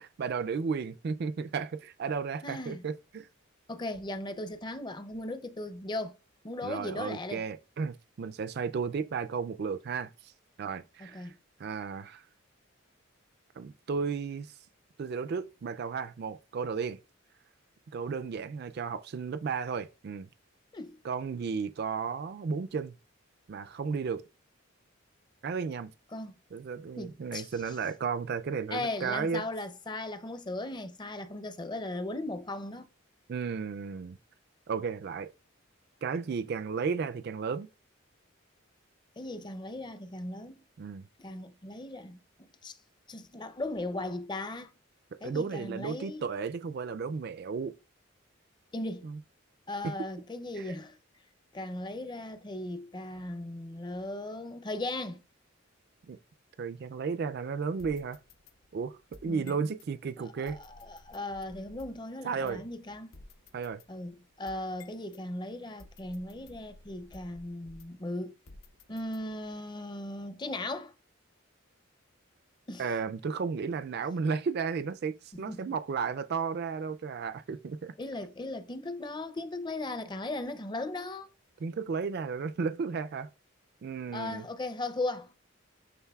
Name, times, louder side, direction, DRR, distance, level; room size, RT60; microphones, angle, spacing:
voice 1, 0.0-3.3 6.6-10.3 10.6-11.3 11.6-12.2 13.6-14.5 15.0-17.0 17.9-20.3 21.0-22.9 23.5-24.2 25.4-25.9 26.5-29.4 33.3-34.2 34.7-35.3 36.0-37.7 40.8-41.1 45.2-47.7 49.0-49.2 49.8-49.9 50.5-50.7 56.1-56.2 56.6-58.2 58.7-60.6 62.2-62.6 63.5-63.8 72.8-77.9 81.6-83.3 83.8-84.5, right 5 dB, 50° right, 0.3 m, -34 dB
voice 2, 2.4-2.8 3.7-6.2 6.4-7.4 11.0-11.4 20.7-21.0 26.1-26.3 27.0-27.8 28.7-32.9 39.2-40.6 41.2-42.2 42.6-42.8 43.1-44.7 45.2-46.3 48.7-49.1 49.7-51.0 51.5-55.2 59.3-59.6 60.2-63.1 63.9-68.3 68.9-70.9 72.7-72.8 75.3-75.6 78.0-81.3 84.1-85.3, left 2 dB, 20° left, 0.5 m, -37 dB
sound 1, 57.8-59.9 60.5-62.1 62.5-62.6 63.1-65.2 65.8-68.1 68.5-69.5, left 2 dB, 75° left, 0.8 m, -55 dB
11.0 x 3.8 x 2.3 m
head